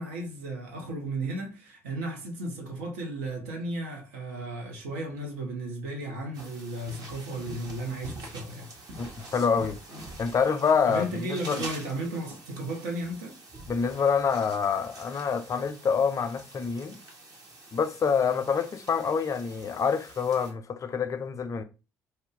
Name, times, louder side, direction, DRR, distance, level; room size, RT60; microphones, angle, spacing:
voice 1, 0.0-8.7 10.8-13.4, right 1 dB, 80° right, 0.8 m, -34 dB
sound 1, 6.3-20.5, right 1 dB, 50° right, 1.2 m, -46 dB
voice 2, 9.0-9.8 10.2-11.7 13.7-17.0 17.7-21.6, left 6 dB, 40° left, 0.5 m, -26 dB
2.5 x 2.2 x 3.7 m
hypercardioid pair, 50°, 8 cm